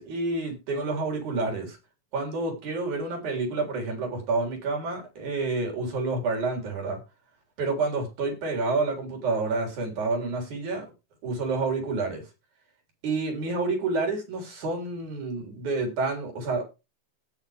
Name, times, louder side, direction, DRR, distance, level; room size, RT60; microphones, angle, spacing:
voice 1, 0.0-1.8 2.1-7.0 7.6-10.9 11.2-12.2 13.0-16.6, right 3 dB, 80° right, 2 dB, 5.2 m, -29 dB
18.5 x 6.5 x 3.5 m, 0.28 s
omnidirectional pair, 3.4 m